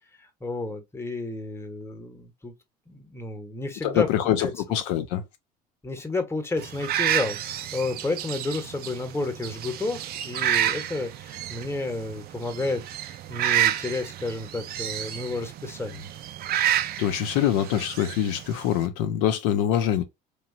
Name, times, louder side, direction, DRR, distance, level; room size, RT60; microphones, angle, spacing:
voice 1, 0.2-2.5 2.9-4.1 4.4-4.5 5.8-16.1, left 2 dB, 10° left, 0.9 m, -31 dB
voice 2, 3.8-5.2 17.0-20.0, left 10 dB, 70° left, 0.5 m, -24 dB
sound 1, 6.6-18.9, right 11 dB, 50° right, 0.4 m, -30 dB
2.9 x 2.3 x 2.6 m
hypercardioid pair, 70°, 21 cm